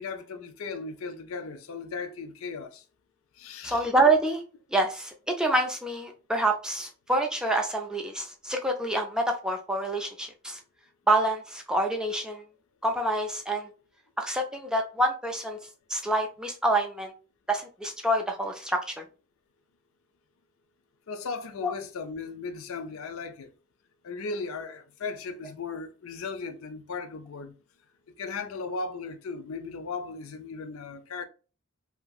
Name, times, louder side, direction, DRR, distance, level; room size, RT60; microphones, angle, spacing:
voice 1, 0.0-2.8 3.3-3.9 21.1-23.5 24.0-27.5 28.2-31.3, left 4 dB, 75° left, 0.5 m, -36 dB
voice 2, 3.6-4.4 4.7-10.6 11.1-12.4 12.8-13.7 14.2-15.6 15.9-17.1 17.5-19.0 21.6-21.7, right 2 dB, 5° right, 0.3 m, -27 dB
2.9 x 2.6 x 2.3 m
head